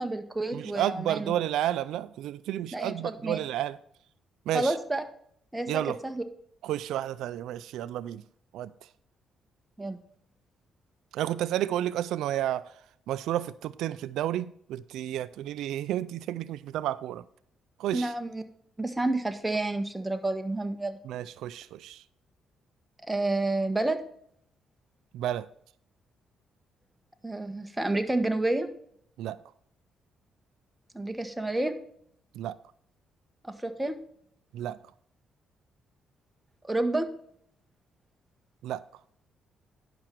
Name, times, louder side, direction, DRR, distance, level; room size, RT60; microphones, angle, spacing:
voice 1, 0.0-1.3 2.7-3.4 4.5-5.0 5.5-6.2 9.8-10.0 17.9-18.4 18.8-21.0 23.0-24.0 27.2-28.7 30.9-31.7 33.4-34.0 36.7-37.1, right 2 dB, 10° right, 1.2 m, -29 dB
voice 2, 0.5-3.8 4.5-4.7 5.7-6.0 6.6-8.2 8.5-8.7 11.1-12.7 13.1-17.2 17.8-18.1 21.0-22.0 25.1-25.5 29.2-29.4 32.3-32.6 34.5-34.8 38.6-38.8, right 12 dB, 85° right, 0.3 m, -31 dB
10.5 x 6.0 x 4.4 m
cardioid pair, 90°, 0 cm